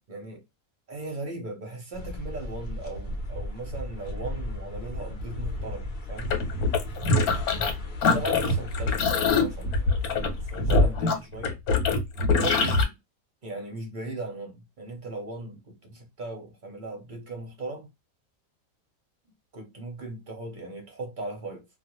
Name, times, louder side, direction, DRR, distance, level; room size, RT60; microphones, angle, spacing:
voice 1, 0.1-0.4 0.9-6.4 8.0-11.6 12.3-13.0 13.4-17.9 19.5-21.7, right 2 dB, 45° right, 0.6 m, -38 dB
sound 1, 1.9-11.0, left 1 dB, 50° left, 0.8 m, -36 dB
sound 2, 6.2-7.7 8.0-12.8, left 3 dB, 85° left, 1.2 m, -23 dB
2.4 x 2.1 x 2.9 m
omnidirectional pair, 1.5 m